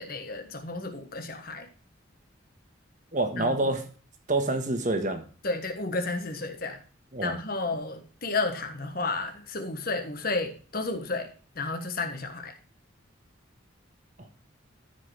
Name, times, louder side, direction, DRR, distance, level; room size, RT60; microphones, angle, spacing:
voice 1, 0.0-1.7 3.4-3.8 5.4-6.8 7.2-11.3 11.5-12.5, left 3 dB, 45° left, 5 dB, 1.3 m, -32 dB
voice 2, 3.1-3.8 4.3-5.2 7.1-7.3, right 2 dB, 40° right, 5 dB, 1.3 m, -26 dB
13.5 x 5.2 x 3.3 m, 0.37 s
head